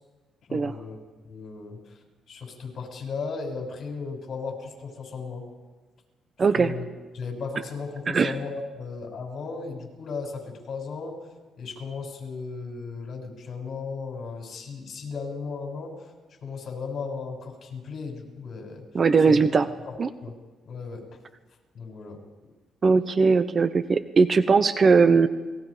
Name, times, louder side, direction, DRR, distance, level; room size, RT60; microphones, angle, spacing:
voice 1, 0.5-1.0 1.2-1.9 2.3-5.4 6.5-6.9 7.1-11.2 11.6-16.0 16.4-18.8 19.3-19.4 19.8-20.3 20.6-21.0 21.7-22.2, left 4 dB, 55° left, 2 dB, 6.6 m, -36 dB
voice 2, 6.4-6.7 8.1-8.3 18.9-19.7 20.0-20.1 22.8-25.3, right 4 dB, 40° right, 12 dB, 0.9 m, -19 dB
29.0 x 21.0 x 5.1 m, 1.3 s
cardioid pair, 90°, 0 cm